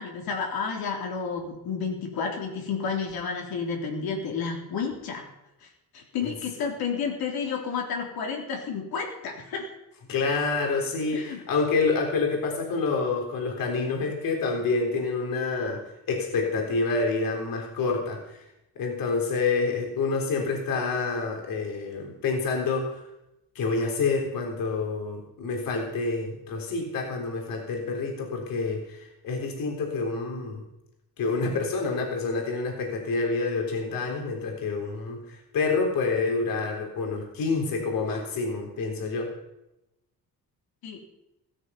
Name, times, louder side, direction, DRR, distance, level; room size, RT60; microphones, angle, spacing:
voice 1, 0.0-5.2 5.6-5.7 5.9-9.7 11.1-11.4 40.8-41.0, left 5 dB, 85° left, 1 dB, 3.9 m, -31 dB
voice 2, 10.1-15.8 16.1-18.4 18.8-23.0 23.6-30.6 31.2-39.3, left 4 dB, 70° left, 2 dB, 3.7 m, -28 dB
17.0 x 13.0 x 5.6 m, 0.89 s
cardioid pair, 180°, 35 cm